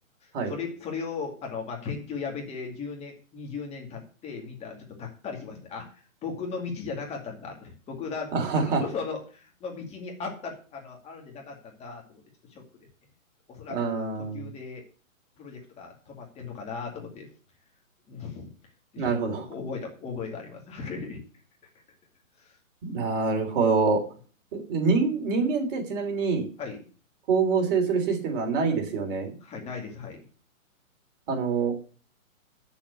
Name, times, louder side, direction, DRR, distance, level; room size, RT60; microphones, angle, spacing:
voice 1, 0.2-12.2 12.5-12.6 13.5-14.8 15.4-17.3 18.1-18.5 18.9-21.2 22.4-22.5 26.6-26.8 29.4-30.2, left 5 dB, 15° left, 1 dB, 2.3 m, -37 dB
voice 2, 8.3-8.8 13.7-14.5 19.0-19.4 22.8-24.0 24.5-26.5 27.3-29.3 31.3-31.8, right 4 dB, 40° right, 3 dB, 3.2 m, -25 dB
7.3 x 7.1 x 8.3 m, 0.40 s
hypercardioid pair, 145°, 42 cm